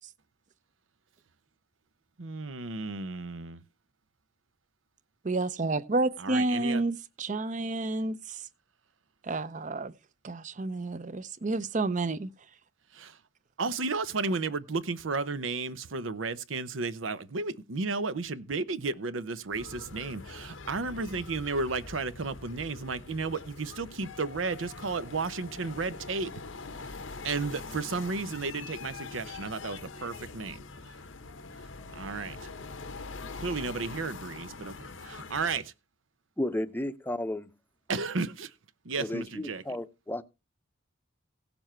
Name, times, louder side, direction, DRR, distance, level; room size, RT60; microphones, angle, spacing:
voice 1, 2.2-3.6 6.2-6.8 12.9-13.1 13.6-26.3 27.2-30.6 31.9-32.4 33.4-34.7 35.0-35.7 37.9-38.5 38.8-39.6, right 4 dB, 85° right, 0.8 m, -33 dB
voice 2, 5.2-8.4 9.2-9.9 10.2-12.3, right 2 dB, 40° right, 0.6 m, -30 dB
sound 1, 19.5-35.6, left 4 dB, 90° left, 1.0 m, -44 dB
voice 3, 36.4-37.5 39.0-40.2, left 1 dB, 10° left, 0.6 m, -33 dB
16.5 x 7.0 x 4.4 m
head